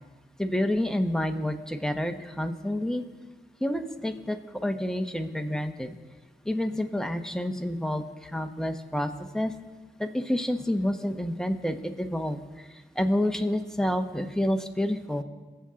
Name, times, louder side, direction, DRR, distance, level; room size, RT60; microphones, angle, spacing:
voice 1, 0.4-3.0 3.6-5.9 6.4-9.5 10.0-12.4 13.0-15.2, left 1 dB, 5° left, 6 dB, 1.2 m, -28 dB
21.0 x 7.9 x 3.8 m, 1.3 s
cardioid pair, 45°, 20 cm